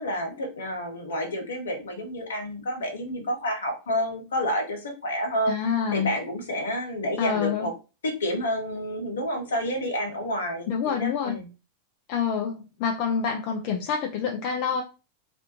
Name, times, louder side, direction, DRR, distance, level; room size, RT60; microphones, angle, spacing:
voice 1, 0.0-5.6 5.9-7.7 8.0-11.5, equal, 65° left, 3 dB, 0.8 m, -29 dB
voice 2, 5.5-6.1 7.2-7.7 10.7-11.4 12.1-14.8, left 7 dB, 45° left, 2 dB, 0.4 m, -27 dB
2.5 x 2.1 x 2.9 m, 0.31 s
figure-of-eight pair, 90°, 0 cm